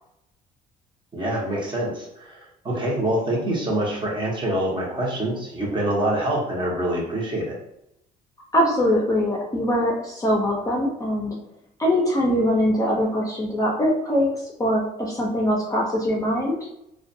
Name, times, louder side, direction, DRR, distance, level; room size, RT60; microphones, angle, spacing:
voice 1, 1.1-7.6, right 1 dB, 30° right, -3 dB, 0.8 m, -25 dB
voice 2, 8.5-11.3 11.8-14.3 14.6-16.6, equal, 20° left, -2 dB, 0.5 m, -22 dB
2.4 x 2.2 x 2.6 m, 0.79 s
cardioid pair, 110°, 17 cm